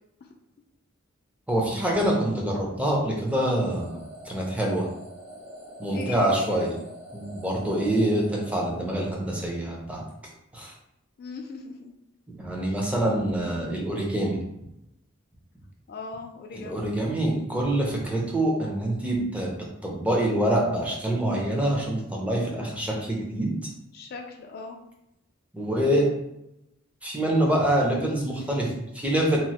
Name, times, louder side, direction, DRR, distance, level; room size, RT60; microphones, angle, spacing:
voice 1, 1.5-4.0 4.2-4.9 5.8-6.7 7.1-10.0 10.5-10.7 12.3-14.4 16.5-19.5 19.8-23.5 25.5-26.1 27.0-29.4, right 1 dB, 5° right, -2 dB, 0.5 m, -25 dB
sound 1, 3.3-9.4, equal, 60° right, 1.0 m, -45 dB
voice 2, 5.9-6.6 11.2-11.9 12.7-12.8 15.9-16.9 23.9-24.8, left 3 dB, 50° left, 3 dB, 0.3 m, -39 dB
3.0 x 2.0 x 2.8 m, 0.85 s
head